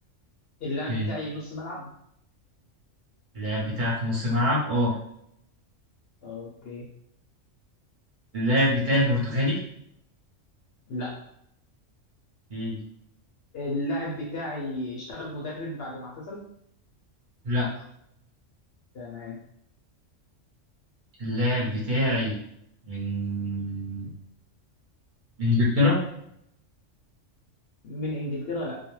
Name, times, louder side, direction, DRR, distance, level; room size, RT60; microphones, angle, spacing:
voice 1, 0.6-1.9 6.2-6.9 10.9-11.1 13.5-16.4 18.9-19.4 27.8-28.8, left 1 dB, 60° left, -4 dB, 0.8 m, -33 dB
voice 2, 3.3-4.9 8.3-9.6 12.5-12.8 17.4-17.7 21.2-22.3 22.9-24.1 25.4-26.0, left 1 dB, 45° right, -6 dB, 0.8 m, -25 dB
2.3 x 2.1 x 3.0 m, 0.72 s
omnidirectional pair, 1.3 m